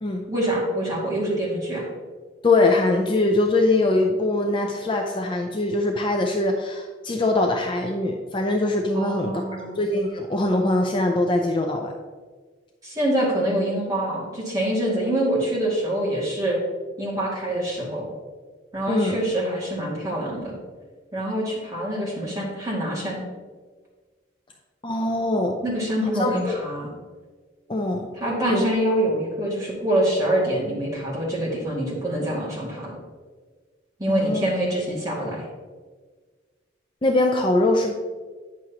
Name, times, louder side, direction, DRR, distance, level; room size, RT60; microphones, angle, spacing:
voice 1, 0.3-1.9 8.9-9.7 12.8-16.6 17.0-18.1 18.7-20.6 21.1-23.2 25.6-26.9 28.1-32.9 34.0-35.4, right 1 dB, 20° right, -6 dB, 2.1 m, -25 dB
voice 2, 2.4-9.3 9.7-11.9 18.9-19.2 24.8-25.6 26.2-26.6 27.7-28.1 28.5-28.7 34.1-34.5 37.0-37.9, left 2 dB, 25° left, 2 dB, 0.5 m, -22 dB
9.4 x 6.1 x 2.9 m, 1.4 s
head